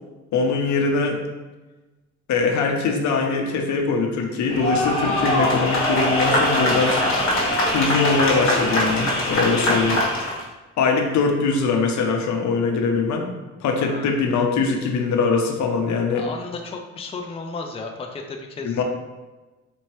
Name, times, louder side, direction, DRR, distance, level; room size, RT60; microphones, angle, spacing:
voice 1, 0.3-1.2 2.3-7.0 7.7-10.0 10.8-13.3 13.6-16.2 18.6-18.8, left 4 dB, 70° left, 3 dB, 0.7 m, -22 dB
sound 1, 4.5-10.4, left 1 dB, 45° left, 1.3 m, -22 dB
voice 2, 9.5-9.9 13.8-14.1 16.1-18.8, left 3 dB, 20° left, 3 dB, 0.4 m, -34 dB
4.4 x 2.8 x 3.1 m, 1.2 s
cardioid pair, 90°, 30 cm